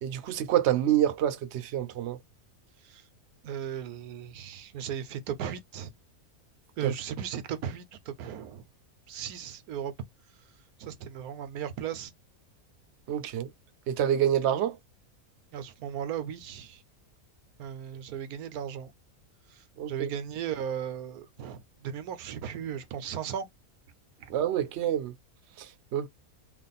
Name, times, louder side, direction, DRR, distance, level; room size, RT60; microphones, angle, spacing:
voice 1, 0.0-2.2 6.8-6.9 13.1-13.5 13.9-14.8 19.8-20.1 24.3-25.1 25.6-25.7 25.9-26.1, right 11 dB, 60° right, 0.8 m, -27 dB
voice 2, 3.4-5.9 6.8-8.7 9.1-9.9 10.8-12.1 15.5-16.8 17.6-18.9 19.5-23.5 24.2-24.3, right 8 dB, 85° right, 1.2 m, -36 dB
3.3 x 2.3 x 4.0 m
omnidirectional pair, 1.5 m